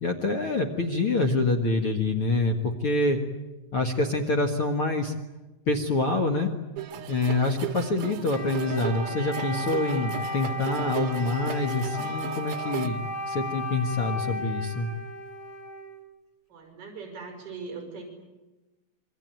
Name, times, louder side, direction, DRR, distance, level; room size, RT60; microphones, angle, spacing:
voice 1, 0.0-3.2 3.7-5.1 5.7-6.5 7.1-14.9, left 2 dB, 55° left, 4 dB, 1.6 m, -26 dB
sound 1, 6.8-12.9, right 9 dB, 65° right, 3.3 m, -36 dB
Wind instrument woodwind instrument, 8.3-16.0, left 1 dB, 25° left, 3.6 m, -35 dB
voice 2, 16.5-18.0, right 4 dB, 35° right, 3 dB, 6.8 m, -40 dB
27.5 x 23.0 x 9.3 m, 1.1 s
omnidirectional pair, 5.0 m